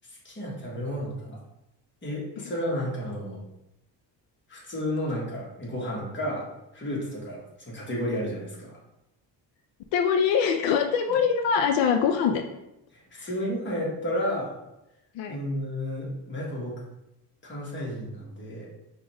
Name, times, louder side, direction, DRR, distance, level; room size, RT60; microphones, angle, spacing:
voice 1, 0.2-1.4 2.0-3.4 4.5-6.4 6.7-8.8 12.9-14.5 15.3-16.7 17.4-18.7, equal, 25° left, -4 dB, 1.2 m, -32 dB
voice 2, 9.9-12.4 13.2-13.3 15.2-15.4, left 7 dB, 80° left, 5 dB, 0.5 m, -23 dB
4.9 x 2.5 x 3.0 m, 0.89 s
cardioid pair, 130°, 44 cm